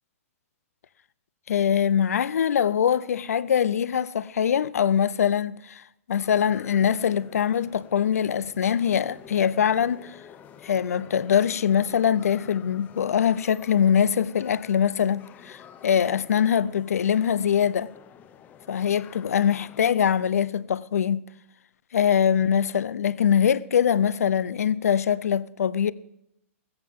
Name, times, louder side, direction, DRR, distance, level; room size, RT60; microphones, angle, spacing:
voice 1, 1.5-5.8 6.1-10.2 10.6-17.9 18.7-21.2 21.9-25.9, left 8 dB, 85° left, 0.6 m, -23 dB
sound 1, 6.1-19.9, left 9 dB, 20° left, 0.8 m, -49 dB
16.0 x 14.5 x 3.7 m
hypercardioid pair, 145°, 8 cm